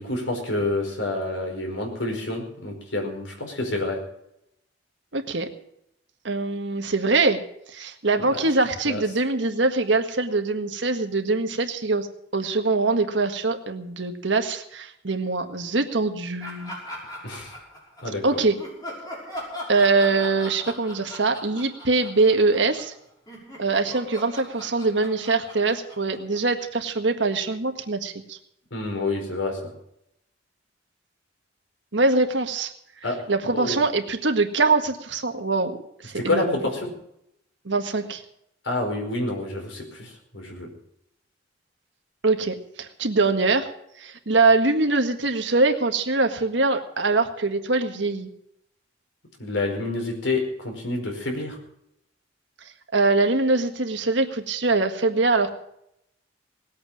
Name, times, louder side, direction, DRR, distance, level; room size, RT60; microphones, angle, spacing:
voice 1, 0.0-4.0 8.3-8.4 8.8-9.0 17.2-17.5 18.0-18.4 28.7-29.7 33.0-33.2 33.5-33.8 36.1-36.9 38.6-40.7 49.4-51.6, left 2 dB, 80° left, 2 dB, 4.9 m, -28 dB
voice 2, 5.1-5.5 6.2-7.4 7.7-12.1 12.3-16.7 18.2-18.5 19.7-22.9 23.6-28.4 31.9-32.7 33.3-35.8 36.0-36.6 37.6-38.2 42.2-43.7 44.0-48.3 52.9-55.5, right 3 dB, 70° right, 6 dB, 1.7 m, -23 dB
Laughter, 16.4-18.2 18.6-23.0 23.3-26.8, equal, 20° left, 6.1 m, -40 dB
19.0 x 8.6 x 7.3 m, 0.76 s
head